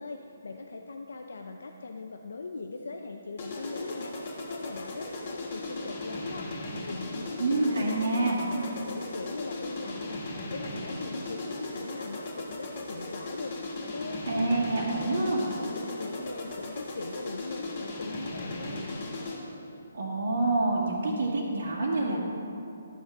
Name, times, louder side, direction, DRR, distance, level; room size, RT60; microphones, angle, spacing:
voice 1, 0.0-13.5 13.9-14.6 15.0-15.2 15.6-18.9, left 3 dB, 80° left, 4 dB, 0.6 m, -40 dB
sound 1, 3.4-19.6, left 2 dB, 45° left, 2.3 m, -37 dB
voice 2, 7.4-8.4 14.3-15.5 19.9-22.2, right 2 dB, 80° right, -6 dB, 2.0 m, -27 dB
12.0 x 6.6 x 6.0 m, 2.9 s
hypercardioid pair, 155°, 0 cm